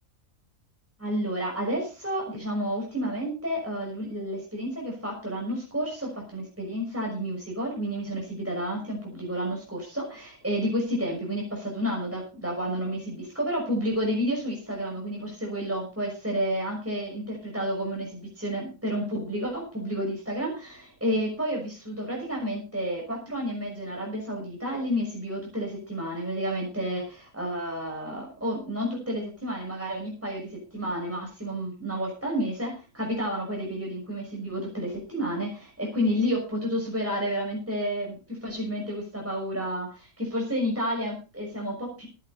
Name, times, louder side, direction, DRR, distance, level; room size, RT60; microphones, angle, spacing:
voice 1, 1.0-42.1, equal, 10° right, -1 dB, 5.8 m, -30 dB
18.0 x 10.5 x 4.1 m, 0.32 s
omnidirectional pair, 1.4 m